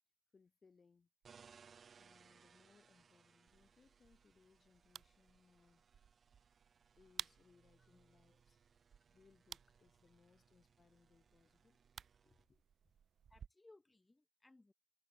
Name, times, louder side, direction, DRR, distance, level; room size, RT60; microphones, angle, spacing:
voice 1, 0.3-1.1 2.0-5.8 7.0-11.8 12.2-12.6, left 5 dB, 50° left, 1.6 m, -71 dB
sound 1, 1.2-12.5, right 6 dB, 65° right, 3.4 m, -68 dB
sound 2, 3.5-13.5, right 7 dB, 90° right, 0.7 m, -57 dB
voice 2, 13.3-14.7, left 2 dB, 20° left, 0.9 m, -66 dB
wide cardioid pair, 115°, 0 cm